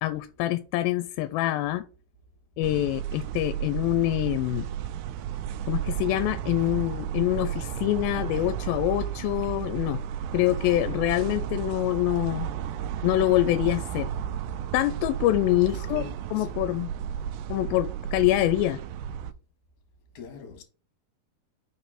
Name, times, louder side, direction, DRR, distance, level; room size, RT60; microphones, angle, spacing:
voice 1, 0.0-1.8 2.6-4.7 5.7-10.0 10.3-12.5 13.0-14.1 14.7-16.0 16.3-16.9 17.5-18.8, left 16 dB, 90° left, 2.4 m, -25 dB
sound 1, 2.6-19.3, right 9 dB, 80° right, 1.9 m, -33 dB
voice 2, 15.7-16.5 20.1-20.6, left 6 dB, 65° left, 2.9 m, -44 dB
5.4 x 4.1 x 5.6 m
omnidirectional pair, 4.1 m